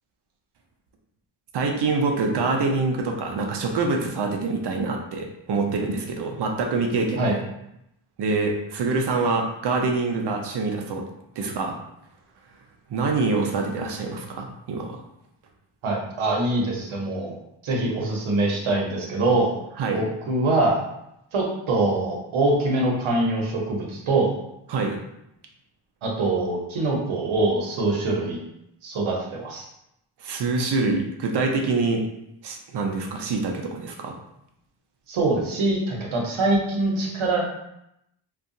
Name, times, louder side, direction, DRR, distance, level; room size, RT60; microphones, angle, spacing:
voice 1, 1.5-7.4 8.2-11.1 11.4-11.8 12.9-15.0 19.8-20.0 24.7-25.0 30.2-32.0 32.4-34.2, right 3 dB, 60° right, 2 dB, 0.5 m, -25 dB
voice 2, 15.8-17.4 17.6-19.6 19.9-20.8 21.3-24.3 26.0-28.4 28.8-29.7 35.1-37.4, right 2 dB, 80° right, -2 dB, 0.8 m, -24 dB
2.7 x 2.3 x 2.5 m, 0.82 s
wide cardioid pair, 115°, 48 cm